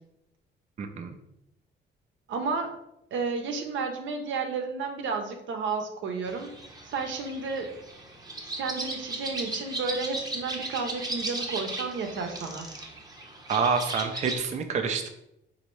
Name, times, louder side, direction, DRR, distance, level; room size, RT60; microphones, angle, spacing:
voice 1, 0.8-1.2 13.5-15.1, right 5 dB, 35° right, 6 dB, 0.4 m, -27 dB
voice 2, 2.3-2.8 3.1-6.5 6.8-7.7 8.5-12.7, right 4 dB, 70° right, 5 dB, 0.7 m, -32 dB
sound 1, 6.3-14.4, right 2 dB, 20° right, 0.8 m, -36 dB
4.1 x 2.7 x 3.1 m, 0.82 s
cardioid pair, 90°, 20 cm